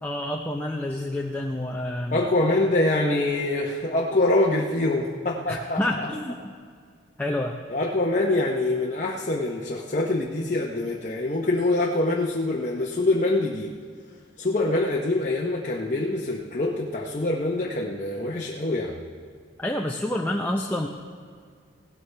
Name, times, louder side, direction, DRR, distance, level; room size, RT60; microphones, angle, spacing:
voice 1, 0.0-2.2 5.5-6.5 7.2-7.6 19.6-20.9, left 1 dB, 10° left, 0 dB, 0.5 m, -28 dB
voice 2, 2.1-6.1 7.7-13.7 14.4-19.0, left 2 dB, 40° left, -2 dB, 0.8 m, -25 dB
17.0 x 12.5 x 3.3 m, 2.1 s
head